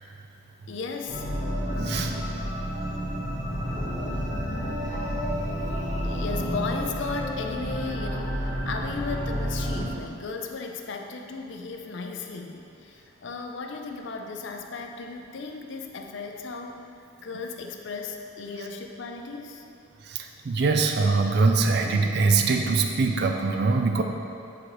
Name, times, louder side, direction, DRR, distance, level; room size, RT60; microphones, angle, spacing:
voice 1, 0.7-1.3 6.0-16.9 17.2-19.7, left 4 dB, 55° left, 3 dB, 0.5 m, -35 dB
sound 1, 1.1-9.9, equal, 15° right, 1.3 m, -30 dB
voice 2, 20.1-24.0, right 4 dB, 50° right, 4 dB, 0.4 m, -23 dB
9.8 x 3.9 x 3.0 m, 2.6 s
head